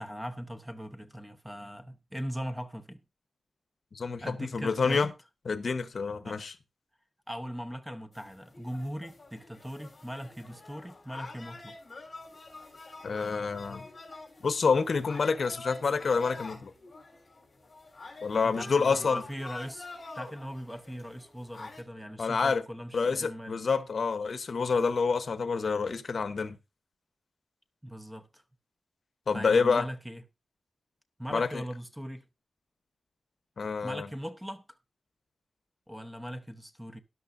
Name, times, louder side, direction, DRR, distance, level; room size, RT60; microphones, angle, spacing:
voice 1, 0.0-3.0 4.2-5.1 6.2-6.4 7.3-11.8 18.4-23.6 27.8-28.4 29.3-30.2 31.2-32.2 33.8-34.8 35.9-37.0, equal, 5° right, 0.8 m, -40 dB
voice 2, 3.9-5.1 5.5-6.5 13.0-13.9 14.4-16.7 18.2-19.2 22.2-22.6 22.9-26.6 29.3-29.9 31.3-31.6 33.6-34.1, left 5 dB, 60° left, 0.9 m, -28 dB
sound 1, 8.1-21.8, left 3 dB, 35° left, 3.5 m, -46 dB
13.0 x 11.0 x 2.5 m
wide cardioid pair, 110°, 0 cm